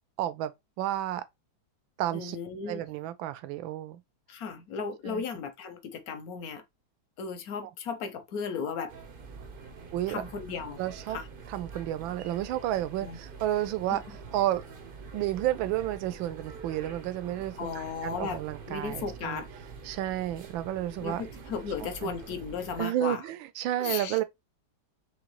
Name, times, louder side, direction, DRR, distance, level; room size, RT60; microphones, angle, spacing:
voice 1, 0.2-0.5 0.8-1.2 2.0-2.4 2.7-4.0 5.1-5.2 9.9-10.2 10.8-11.2 11.5-14.0 14.3-14.6 15.1-19.4 19.8-21.2 22.0-22.1 22.8-24.2, right 13 dB, 85° right, 1.4 m, -31 dB
voice 2, 2.1-2.8 4.3-6.6 7.2-8.9 10.1-10.8 11.1-11.3 13.0-13.2 13.9-14.0 17.6-18.4 18.7-19.5 21.0-23.2 23.8-24.2, left 5 dB, 60° left, 1.0 m, -35 dB
sound 1, 8.9-22.8, right 5 dB, 65° right, 0.5 m, -45 dB
5.0 x 3.1 x 2.9 m
omnidirectional pair, 2.1 m